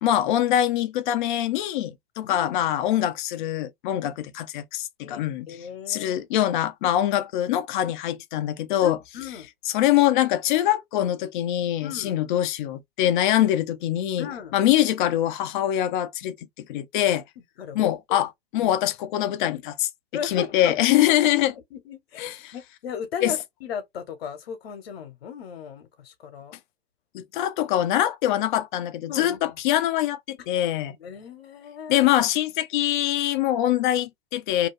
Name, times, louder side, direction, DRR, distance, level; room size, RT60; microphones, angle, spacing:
voice 1, 0.0-5.6 5.9-9.0 9.7-16.4 16.7-17.2 17.7-19.9 20.2-21.5 22.2-22.5 23.2-23.3 27.1-31.0 31.9-34.7, left 12 dB, 50° left, 0.6 m, -24 dB
voice 2, 2.2-2.7 5.0-5.2 5.5-6.1 8.8-9.5 11.8-12.2 14.2-14.5 17.6-18.3 18.6-18.7 20.1-20.8 21.5-26.5 29.1-29.4 30.4-30.5 31.0-32.1, left 7 dB, 70° left, 1.1 m, -36 dB
2.7 x 2.3 x 3.1 m
hypercardioid pair, 110°, 31 cm